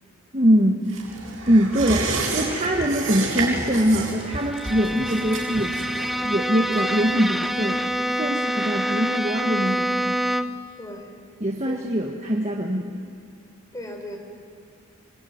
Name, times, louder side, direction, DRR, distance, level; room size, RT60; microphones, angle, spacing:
voice 1, 0.3-1.0 1.5-5.8 6.2-7.9 8.2-10.2 11.4-13.1, equal, 30° right, 0 dB, 1.6 m, -23 dB
sound 1, 0.9-8.0 8.3-8.4, right 3 dB, 70° right, 7.2 m, -30 dB
Bowed string instrument, 4.2-10.7, equal, ahead, 0.6 m, -26 dB
voice 2, 10.8-11.2 11.6-11.8 12.1-12.2 13.7-14.2, left 1 dB, 15° left, 3 dB, 4.3 m, -37 dB
26.0 x 23.5 x 9.6 m, 2.4 s
head